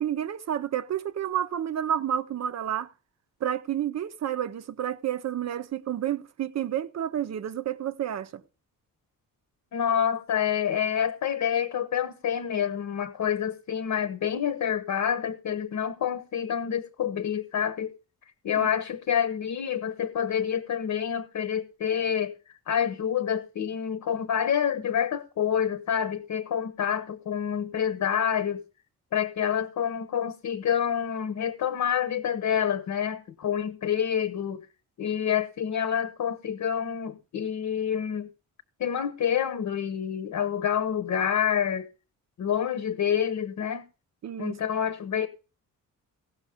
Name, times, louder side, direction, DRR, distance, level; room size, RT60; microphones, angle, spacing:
voice 1, 0.0-2.9 3.4-8.4 18.6-18.7 44.2-44.6, right 10 dB, 50° right, 0.6 m, -30 dB
voice 2, 9.7-17.9 18.4-22.3 22.7-28.6 29.1-34.6 35.0-38.3 38.8-41.9 42.4-43.8 44.4-45.3, left 8 dB, 60° left, 0.9 m, -27 dB
16.5 x 6.3 x 5.0 m
wide cardioid pair, 140°, 33 cm